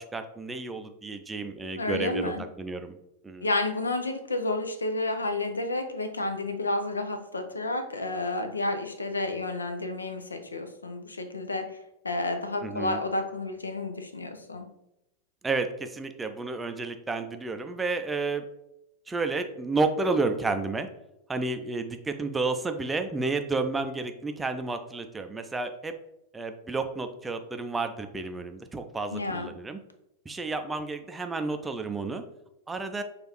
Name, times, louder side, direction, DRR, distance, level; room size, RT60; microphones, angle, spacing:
voice 1, 0.0-3.0 3.2-3.5 12.6-13.0 15.4-18.4 19.1-20.9 21.3-25.9 26.3-29.8 30.3-32.2 32.7-33.0, right 3 dB, 10° right, 7 dB, 0.4 m, -31 dB
voice 2, 1.8-2.4 3.4-11.8 12.0-14.7 29.1-29.5, left 2 dB, 75° left, 8 dB, 0.5 m, -31 dB
6.2 x 2.5 x 3.1 m, 0.85 s
figure-of-eight pair, 90°, 0 cm